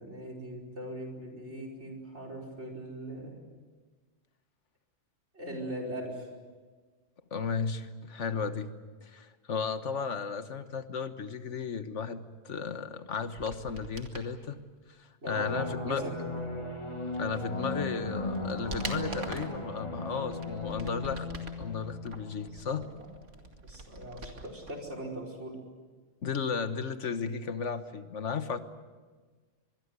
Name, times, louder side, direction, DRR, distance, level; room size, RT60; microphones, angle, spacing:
voice 1, 0.0-3.4 5.3-6.3 15.2-16.3 22.4-22.8 23.6-25.6, right 1 dB, 70° right, 3 dB, 5.3 m, -40 dB
voice 2, 7.3-8.7 9.0-14.6 15.0-16.0 17.2-21.3 21.6-22.9 26.2-28.6, left 5 dB, 80° left, 10 dB, 1.6 m, -34 dB
sound 1, 13.4-14.3 17.4-17.5 17.9-19.6 20.2-21.7 22.1-24.7 25.0-25.1, right 2 dB, 85° right, 2.7 m, -44 dB
sound 2, 15.4-22.8, left 2 dB, 25° left, 2.1 m, -37 dB
24.5 x 21.5 x 8.2 m, 1.4 s
omnidirectional pair, 1.2 m